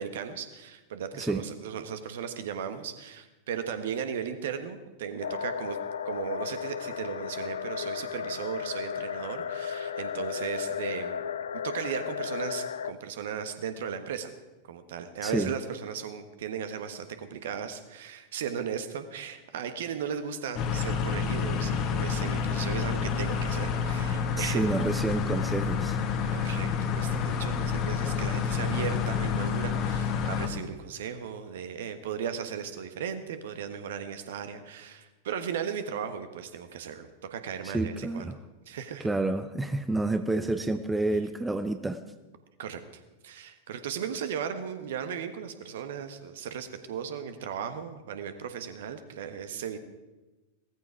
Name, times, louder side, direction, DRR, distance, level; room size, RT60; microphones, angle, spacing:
voice 1, 0.0-5.8 6.0-11.3 11.6-14.3 14.7-24.7 26.3-26.7 27.0-38.3 38.7-39.1 42.6-42.8 43.2-49.8, right 8 dB, 55° right, 9 dB, 1.3 m, -36 dB
sound 1, 5.2-12.9, left 7 dB, 65° left, 0.5 m, -34 dB
sound 2, 20.6-30.5, left 6 dB, 35° left, 1.5 m, -29 dB
voice 2, 24.3-26.0 37.6-38.4 39.0-42.0, right 2 dB, 5° right, 9 dB, 0.7 m, -29 dB
16.5 x 14.5 x 4.8 m, 1.1 s
figure-of-eight pair, 90°, 0 cm